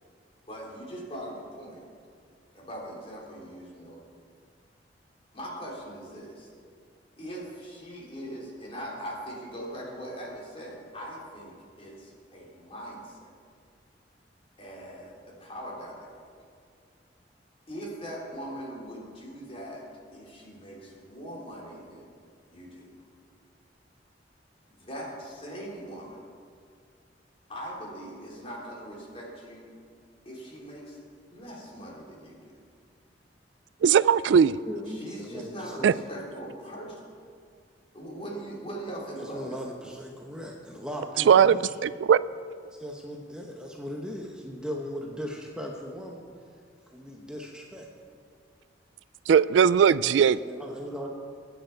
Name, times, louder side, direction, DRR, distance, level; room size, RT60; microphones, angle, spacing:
voice 1, 0.5-1.8 2.5-4.0 5.3-6.5 7.2-13.3 14.6-16.1 17.7-19.8 20.1-22.1 22.5-23.0 24.7-26.2 27.5-29.7 30.3-31.0 31.3-32.6 33.9-34.0 34.9-37.0 37.9-39.6, equal, 30° left, 3.4 m, -41 dB
voice 2, 33.8-34.5 35.8-35.9 41.3-42.2 49.3-50.4, right 7 dB, 75° right, 0.3 m, -19 dB
voice 3, 34.7-36.0 39.2-42.0 42.7-46.3 46.9-47.9 50.1-51.1, equal, 5° right, 1.0 m, -38 dB
23.0 x 9.2 x 4.6 m
head